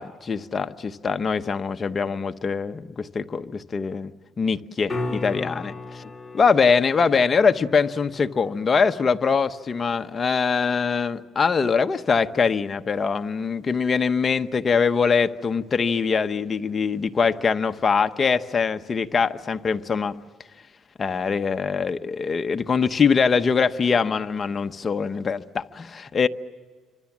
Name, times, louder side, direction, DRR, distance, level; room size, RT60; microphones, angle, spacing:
voice 1, 0.0-4.1 4.4-20.1 21.0-26.3, left 5 dB, 30° left, 8 dB, 1.0 m, -23 dB
sound 1, 4.9-10.9 15.6-15.7, left 2 dB, 10° left, 4.1 m, -37 dB
28.0 x 25.5 x 7.4 m, 1.5 s
cardioid pair, 120°, 0 cm